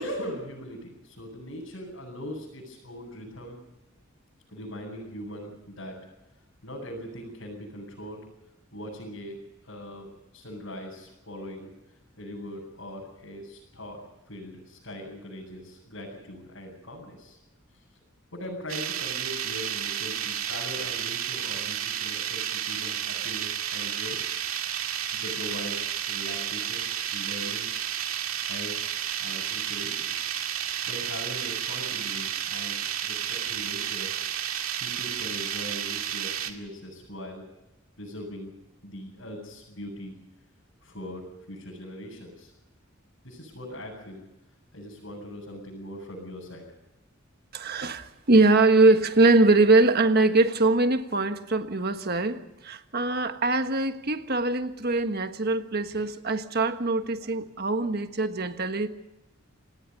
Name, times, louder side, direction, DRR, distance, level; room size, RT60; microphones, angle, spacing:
voice 1, 0.0-3.6 4.5-5.9 6.6-8.2 8.7-9.4 9.6-10.1 10.3-11.7 12.2-14.0 14.3-17.4 18.3-24.2 25.1-27.7 28.4-28.7 29.2-30.1 30.9-32.7 33.0-34.1 34.8-37.4 38.0-38.5 38.8-40.2 40.8-42.5 43.2-44.2 44.7-46.6, equal, 65° left, 7.9 m, -40 dB
sound 1, 18.7-36.5, right 9 dB, 75° right, 2.2 m, -31 dB
voice 2, 47.5-58.9, right 2 dB, 45° right, 1.4 m, -22 dB
28.0 x 19.0 x 5.5 m
head